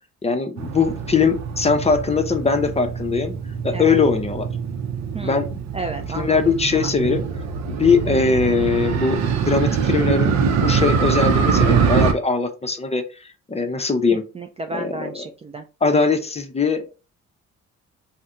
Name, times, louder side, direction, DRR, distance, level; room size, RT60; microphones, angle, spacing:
voice 1, 0.2-3.4 3.6-4.5 5.2-5.5 6.1-7.2 7.7-14.2 14.7-15.1 15.8-17.0, left 4 dB, 20° left, 7 dB, 0.6 m, -21 dB
Motorcycle, 0.6-12.1, right 6 dB, 65° right, 0.6 m, -23 dB
voice 2, 5.1-5.5 5.7-6.9 14.3-15.7, right 2 dB, 20° right, 4 dB, 0.4 m, -32 dB
2.7 x 2.1 x 3.6 m, 0.31 s
cardioid pair, 90°, 30 cm